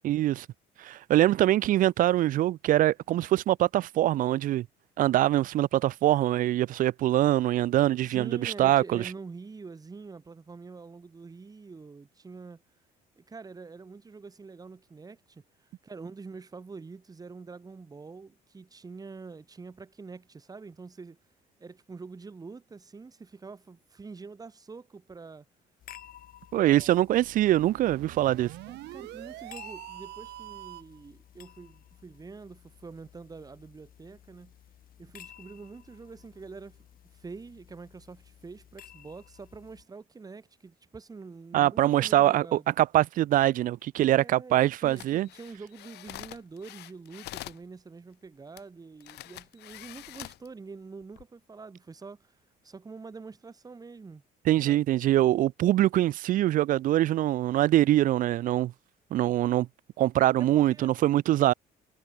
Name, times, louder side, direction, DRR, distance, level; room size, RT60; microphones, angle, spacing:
voice 1, 0.0-0.5 0.8-4.7 5.0-9.0 26.5-28.5 41.5-45.3 54.5-58.7 59.1-59.7 60.0-61.5, right 14 dB, 55° right, 0.4 m, -23 dB
voice 2, 8.0-12.6 13.2-21.2 21.6-25.5 26.5-27.0 28.7-34.5 35.0-36.8 37.1-42.7 44.0-54.8 60.4-61.0, right 4 dB, 20° right, 1.9 m, -45 dB
sound 1, 25.8-39.8, left 11 dB, 60° left, 6.7 m, -54 dB
sound 2, 27.1-31.0, right 18 dB, 85° right, 1.6 m, -44 dB
sound 3, 44.8-47.6 48.6-48.7 49.0-50.5 51.0-51.2, left 17 dB, 80° left, 3.5 m, -45 dB
cardioid pair, 110°, 17 cm